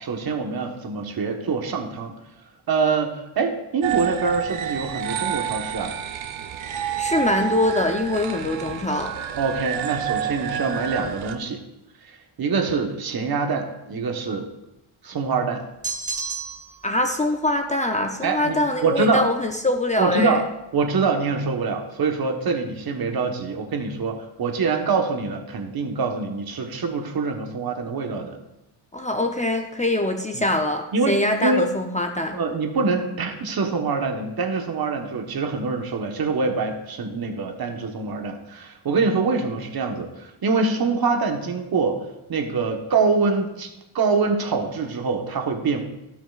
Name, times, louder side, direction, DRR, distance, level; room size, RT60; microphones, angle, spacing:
voice 1, 0.0-2.2 2.7-6.0 8.6-8.8 9.4-11.6 12.1-14.5 15.0-15.6 18.2-19.3 20.0-20.4 20.7-28.3 30.3-30.5 30.9-31.6 32.3-42.0 42.3-43.7 43.9-45.8, right 4 dB, 50° right, 4 dB, 1.3 m, -25 dB
sound 1, 3.8-11.4, right 9 dB, 75° right, 0.9 m, -29 dB
voice 2, 7.0-9.1 16.8-20.4 28.9-32.4, left 1 dB, 15° left, 4 dB, 0.6 m, -23 dB
sound 2, 15.8-16.8, right 4 dB, 15° right, 1.0 m, -30 dB
17.0 x 6.0 x 2.4 m, 0.91 s
cardioid pair, 100°, 48 cm